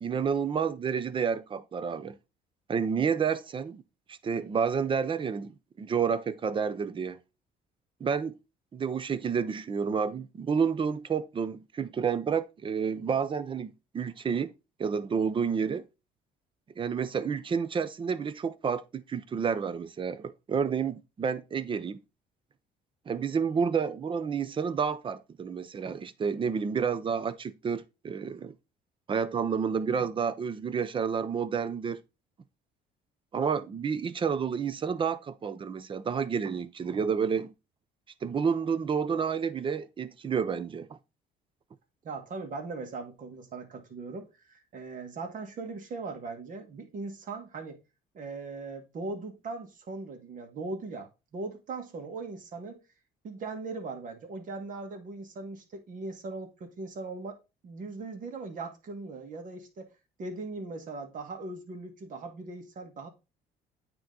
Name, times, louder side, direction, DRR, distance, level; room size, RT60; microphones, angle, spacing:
voice 1, 0.0-2.2 2.7-3.8 4.1-7.2 8.0-8.4 8.7-14.5 14.8-15.8 16.8-22.0 23.1-28.5 29.1-32.0 33.3-37.5 38.2-41.0, right 6 dB, 30° right, 0.6 m, -30 dB
voice 2, 42.0-47.8 48.1-52.8 53.2-57.4 57.6-59.9 60.2-63.1, right 3 dB, 50° right, 1.6 m, -39 dB
9.0 x 3.0 x 3.8 m
cardioid pair, 110°, 17 cm